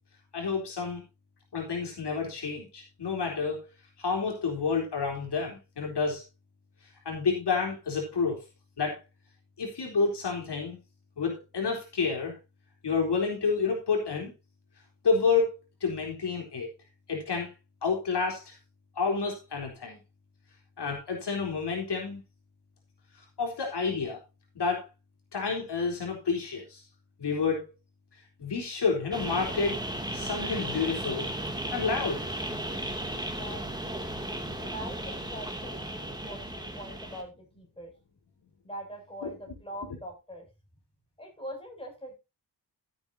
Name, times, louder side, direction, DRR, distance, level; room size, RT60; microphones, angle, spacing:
voice 1, 0.3-1.0 1.5-3.6 4.0-6.2 7.1-8.4 8.8-9.0 9.6-10.8 11.2-12.4 12.8-14.3 15.0-15.5 15.8-16.7 17.1-17.5 17.8-18.5 19.0-20.0 20.8-22.2 23.4-24.2 24.6-24.9 25.3-26.8 27.2-27.6 28.4-29.8 30.1-31.3 31.7-32.2 39.2-39.3, left 5 dB, 70° left, 1 dB, 3.9 m, -29 dB
sound 1, 29.1-37.2, right 1 dB, 10° right, 2.5 m, -35 dB
voice 2, 33.0-34.1 34.6-37.9 38.6-40.5 41.2-42.2, equal, 15° left, 1 dB, 7.2 m, -43 dB
14.5 x 8.8 x 2.8 m, 0.26 s
cardioid pair, 85°, 42 cm